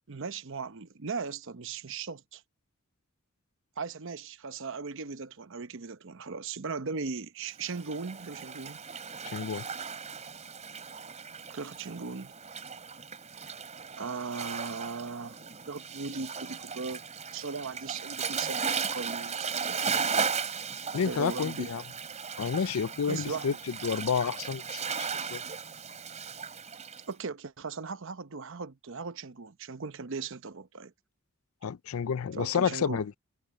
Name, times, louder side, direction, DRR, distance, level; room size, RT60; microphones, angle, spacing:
voice 1, 0.1-2.4 3.8-8.8 11.5-12.3 14.0-15.4 15.7-17.0 17.3-19.8 21.0-21.7 23.1-23.6 27.1-30.9 32.4-33.0, right 4 dB, 65° right, 0.9 m, -38 dB
Waves surf, 7.6-27.0, right 6 dB, 35° right, 3.6 m, -36 dB
voice 2, 9.3-9.6 20.9-21.8 22.4-25.4 31.6-33.1, left 6 dB, 85° left, 0.5 m, -30 dB
head